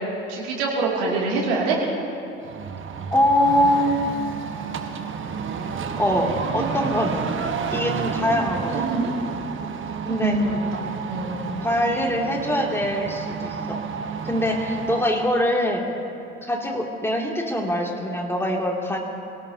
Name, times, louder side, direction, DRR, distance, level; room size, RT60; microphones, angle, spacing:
voice 1, 0.3-1.8 8.7-9.1 10.1-11.3, right 3 dB, 70° right, -2 dB, 2.7 m, -25 dB
sound 1, 2.4-15.2, right 6 dB, 40° right, 1.3 m, -31 dB
voice 2, 3.1-4.0 6.0-7.3 7.7-8.8 10.0-10.4 11.6-13.8 14.2-15.8 16.4-19.0, equal, 10° left, 0 dB, 2.7 m, -23 dB
25.0 x 17.5 x 2.9 m, 2.6 s
figure-of-eight pair, 50°, 31 cm